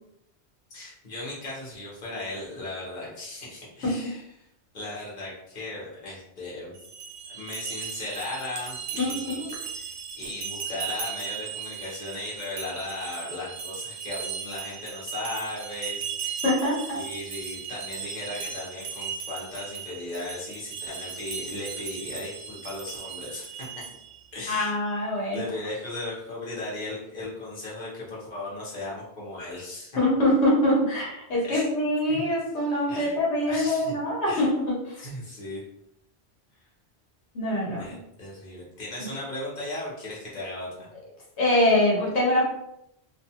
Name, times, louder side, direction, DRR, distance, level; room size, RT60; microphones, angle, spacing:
voice 1, 0.7-4.2 4.7-6.7 7.3-9.4 9.7-9.9 10.2-16.4 16.9-23.8 24.3-24.7 25.3-30.0 31.4-31.6 32.1-32.2 32.9-33.1 33.5-33.9 34.3-34.5 35.0-35.6 37.8-40.9, left 2 dB, 45° left, -6 dB, 1.1 m, -37 dB
sound 1, 6.7-24.2, right 7 dB, 85° right, 0.9 m, -37 dB
voice 2, 9.0-9.5 16.4-17.0 24.5-25.4 30.0-35.0 37.3-37.9 39.0-39.1 41.4-42.5, left 1 dB, 80° left, -4 dB, 1.1 m, -24 dB
2.6 x 2.3 x 2.8 m, 0.80 s
omnidirectional pair, 1.1 m